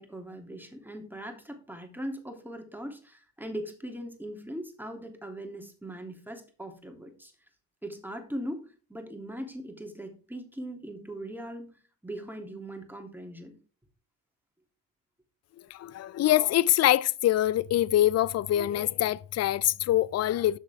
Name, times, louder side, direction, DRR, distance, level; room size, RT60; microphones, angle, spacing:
voice 1, 0.0-7.3 7.8-13.5, right 1 dB, 5° right, 3.2 m, -40 dB
voice 2, 15.7-20.6, left 13 dB, 35° left, 0.6 m, -24 dB
12.5 x 7.5 x 3.7 m
hypercardioid pair, 60°, 43 cm